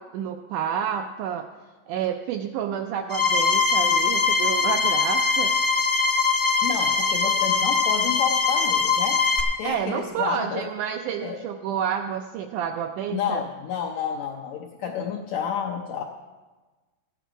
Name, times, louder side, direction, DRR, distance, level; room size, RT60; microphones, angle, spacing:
voice 1, 0.0-1.5 1.9-5.5 9.6-13.4, right 8 dB, 85° right, 6 dB, 1.8 m, -29 dB
sound 1, 3.1-9.4, left 4 dB, 35° left, 0.7 m, -22 dB
voice 2, 6.6-9.2 9.6-10.7 11.2-11.4 13.1-16.0, left 8 dB, 80° left, 1 dB, 1.6 m, -30 dB
15.0 x 9.3 x 5.1 m, 1.3 s
omnidirectional pair, 4.1 m